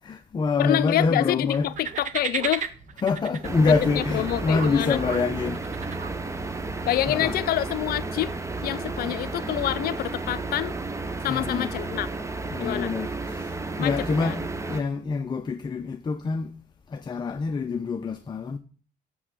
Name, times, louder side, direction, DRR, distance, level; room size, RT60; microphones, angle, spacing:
voice 1, 0.0-1.7 3.0-6.0 7.1-7.3 11.3-11.7 12.5-14.4 14.7-16.5 16.9-18.6, left 4 dB, 25° left, 0.6 m, -26 dB
voice 2, 0.6-2.7 3.7-5.0 6.9-8.3 8.6-10.8 11.2-12.1 12.6-12.9 13.8-13.9 14.2-14.4, left 13 dB, 65° left, 0.6 m, -27 dB
sound 1, 1.5-6.5, right 7 dB, 45° right, 0.8 m, -36 dB
sound 2, 3.4-14.8, right 3 dB, 15° right, 0.8 m, -32 dB
7.0 x 6.1 x 6.8 m
cardioid pair, 110°, 17 cm